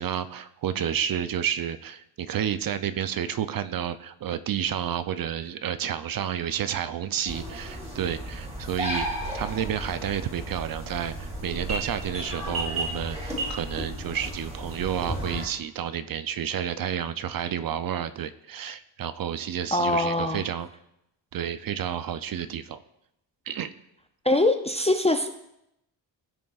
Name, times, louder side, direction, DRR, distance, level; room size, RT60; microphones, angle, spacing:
voice 1, 0.0-9.1 9.3-20.7 21.3-22.8 23.5-23.7, right 9 dB, 50° right, 12 dB, 0.5 m, -30 dB
sound 1, 7.3-15.5, right 1 dB, 15° right, 2.5 m, -33 dB
voice 2, 19.7-20.4 24.2-25.3, left 2 dB, 15° left, 6 dB, 0.3 m, -23 dB
15.0 x 6.0 x 2.4 m, 0.83 s
wide cardioid pair, 125°, 44 cm